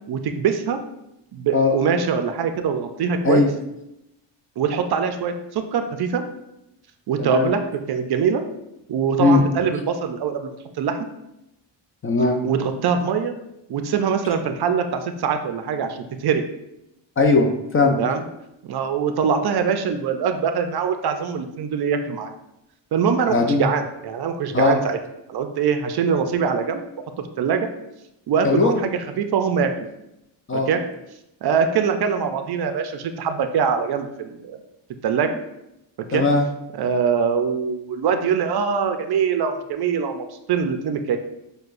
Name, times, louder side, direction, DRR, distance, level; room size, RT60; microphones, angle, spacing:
voice 1, 0.1-0.8 1.3-3.5 4.6-6.2 7.1-7.6 7.9-8.4 8.9-11.0 12.4-13.3 13.7-16.4 18.0-18.2 18.6-22.3 22.9-23.3 23.6-25.0 25.3-26.8 27.4-27.7 28.3-29.9 30.5-30.8 31.4-34.6 35.0-35.3 36.1-36.2 36.8-41.2, right 6 dB, 55° right, 7 dB, 0.5 m, -23 dB
voice 2, 7.2-7.5 9.2-9.4 12.0-12.4 17.2-18.0 23.3-23.6 24.5-24.8 28.4-28.7 30.5-30.7 36.1-36.5, left 3 dB, 30° left, 2 dB, 0.5 m, -18 dB
6.4 x 2.2 x 2.5 m, 0.86 s
cardioid pair, 90°, 47 cm